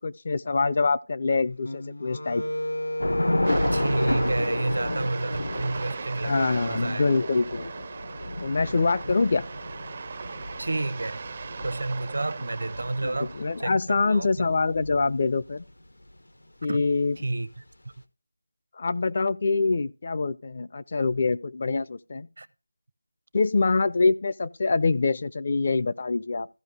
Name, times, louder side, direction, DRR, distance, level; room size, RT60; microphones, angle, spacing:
voice 1, 0.0-2.4 6.2-7.7 8.4-9.4 13.0-15.6 16.6-17.2 18.8-22.3 23.3-26.5, left 3 dB, 40° left, 0.4 m, -25 dB
Wind instrument woodwind instrument, 1.6-5.8, left 1 dB, 75° left, 1.9 m, -33 dB
Thunder / Rain, 3.0-15.5, left 1 dB, 90° left, 1.2 m, -32 dB
sound 1, 3.4-13.7, right 5 dB, 35° right, 0.4 m, -38 dB
voice 2, 3.7-7.0 10.6-11.2 11.6-13.3 13.6-14.5 16.7-16.8 17.2-17.6 22.4-22.5, right 2 dB, 70° right, 0.7 m, -30 dB
14.5 x 5.1 x 3.5 m
figure-of-eight pair, 170°, 0 cm